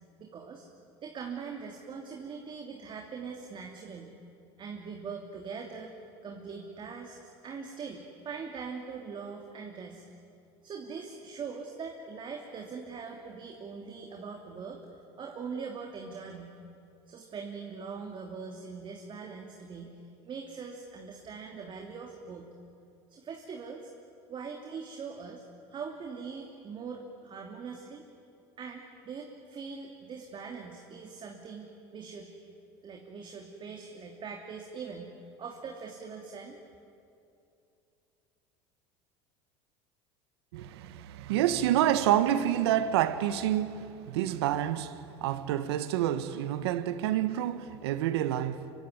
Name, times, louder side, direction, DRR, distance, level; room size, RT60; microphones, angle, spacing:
voice 1, 0.2-0.7 1.0-4.1 4.6-6.0 6.2-7.2 7.4-10.0 10.6-14.8 15.2-16.6 17.1-20.0 20.2-22.5 23.1-23.9 24.3-25.4 25.7-28.0 28.6-32.3 32.8-35.1 35.4-36.6, right 5 dB, 40° right, 2.9 m, -42 dB
voice 2, 40.5-48.7, right 11 dB, 85° right, 1.4 m, -28 dB
25.5 x 24.5 x 9.6 m
supercardioid pair, 100°, 13 cm